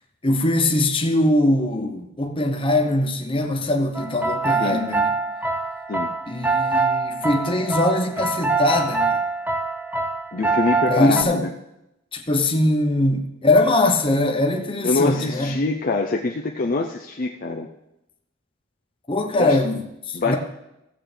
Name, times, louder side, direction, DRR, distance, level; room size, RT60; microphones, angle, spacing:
voice 1, 0.2-5.1 6.3-9.2 10.8-11.4 12.1-15.6 19.1-20.4, left 1 dB, 25° left, 1.0 m, -21 dB
sound 1, 3.9-11.2, right 3 dB, 10° right, 0.5 m, -24 dB
voice 2, 10.3-11.5 14.8-17.7 19.4-19.6 20.1-20.4, left 3 dB, 45° left, 0.6 m, -24 dB
16.5 x 7.5 x 3.4 m
head